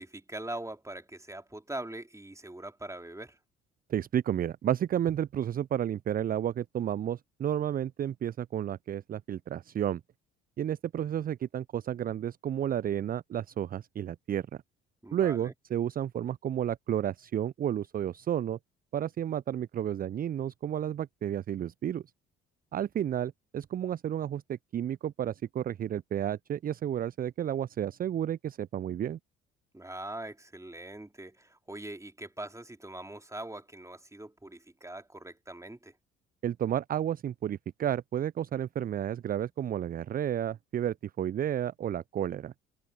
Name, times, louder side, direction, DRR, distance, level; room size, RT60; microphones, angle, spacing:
voice 1, 0.0-3.4 15.0-15.5 29.7-35.9, right 1 dB, 10° right, 3.5 m, -42 dB
voice 2, 3.9-10.0 10.6-14.5 15.1-18.6 18.9-22.0 22.7-29.2 36.4-42.5, right 10 dB, 30° right, 0.4 m, -31 dB
figure-of-eight pair, 50°, 32 cm